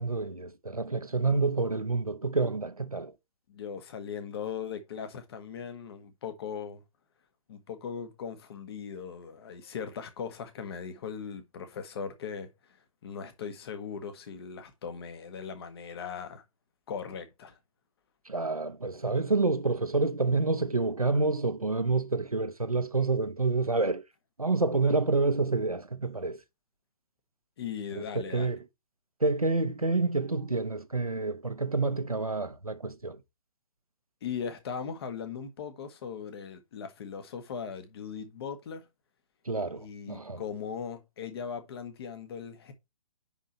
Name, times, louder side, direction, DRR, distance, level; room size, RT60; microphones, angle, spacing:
voice 1, 0.0-3.1 18.2-24.0 24.4-26.4 27.9-28.6 29.2-33.2 39.4-40.4, right 3 dB, 90° right, 1.0 m, -28 dB
voice 2, 3.5-6.8 7.5-12.8 13.0-16.4 16.9-17.6 27.6-28.6 34.2-38.8 39.7-42.7, left 7 dB, 45° left, 1.6 m, -39 dB
9.8 x 3.8 x 4.2 m
figure-of-eight pair, 125°, 18 cm